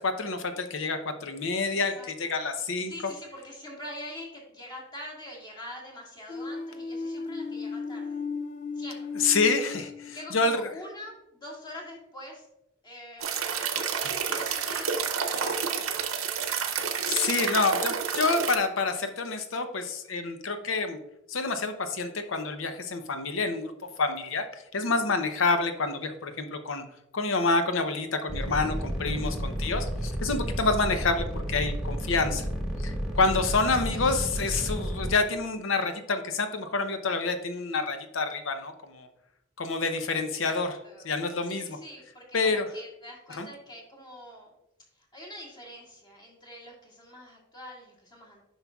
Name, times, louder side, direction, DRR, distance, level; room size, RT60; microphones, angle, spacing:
voice 1, 0.0-1.9 2.2-2.9 9.2-10.6 17.1-21.0 21.3-23.7 24.0-26.8 27.1-32.5 32.8-39.1 39.6-40.8 41.0-41.7 42.3-42.7 43.4-43.5, left 3 dB, 70° left, 8 dB, 0.7 m, -28 dB
voice 2, 1.7-2.4 2.9-8.2 8.8-9.2 10.1-12.5 12.8-16.3 33.9-34.1 40.4-41.1 41.4-44.5 44.9-48.4, left 1 dB, 20° left, -2 dB, 1.9 m, -44 dB
sound 1, 6.3-10.6, left 4 dB, 40° left, 0.3 m, -35 dB
sound 2, 13.2-18.6, right 6 dB, 85° right, 0.8 m, -29 dB
sound 3, 28.3-35.1, equal, ahead, 1.5 m, -31 dB
9.5 x 5.6 x 2.4 m, 0.84 s
head